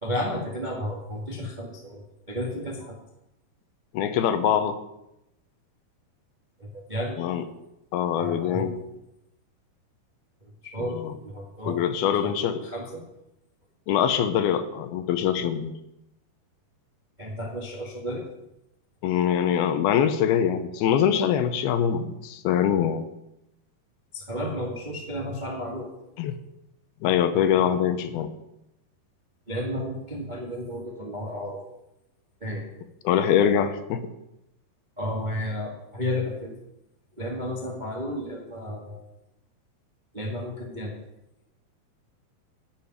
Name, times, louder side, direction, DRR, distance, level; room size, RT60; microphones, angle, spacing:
voice 1, 0.0-3.0 6.6-7.2 8.2-8.7 10.6-11.8 12.2-12.3 12.6-13.1 17.2-18.3 24.1-25.9 29.5-31.6 32.4-32.7 35.0-36.6 37.2-39.0 40.1-40.9, left 1 dB, 35° right, -1 dB, 0.7 m, -32 dB
voice 2, 3.9-4.8 7.2-7.4 7.9-8.7 11.7-12.7 13.9-15.7 19.0-23.1 26.2-26.3 27.0-28.3 33.0-34.1, left 9 dB, 75° left, 10 dB, 2.6 m, -23 dB
11.5 x 6.9 x 9.4 m, 0.88 s
omnidirectional pair, 4.8 m